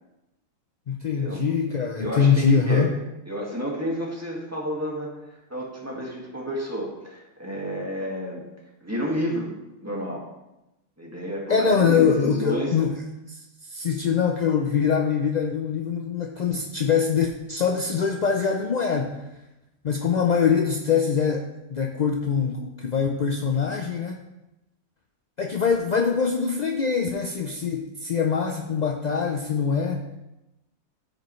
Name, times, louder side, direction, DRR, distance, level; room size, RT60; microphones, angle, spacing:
voice 1, 0.9-3.0 11.5-13.0 13.3-19.2 19.8-24.2 25.4-30.0, left 6 dB, 55° left, 2 dB, 0.4 m, -23 dB
voice 2, 2.0-2.9 3.2-8.4 8.8-9.5 9.8-10.3 11.0-12.7, equal, 10° right, -3 dB, 1.7 m, -30 dB
13.5 x 5.2 x 3.1 m, 0.96 s
omnidirectional pair, 1.4 m